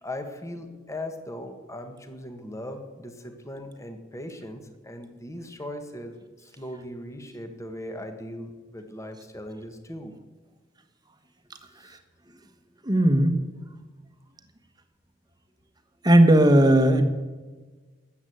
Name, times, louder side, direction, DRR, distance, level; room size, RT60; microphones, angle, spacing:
voice 1, 0.0-10.1 11.8-12.0, left 1 dB, 15° left, 6 dB, 1.5 m, -39 dB
voice 2, 12.8-13.4 16.0-17.0, right 1 dB, 20° right, 8 dB, 1.3 m, -17 dB
13.0 x 8.3 x 9.4 m, 1.3 s
head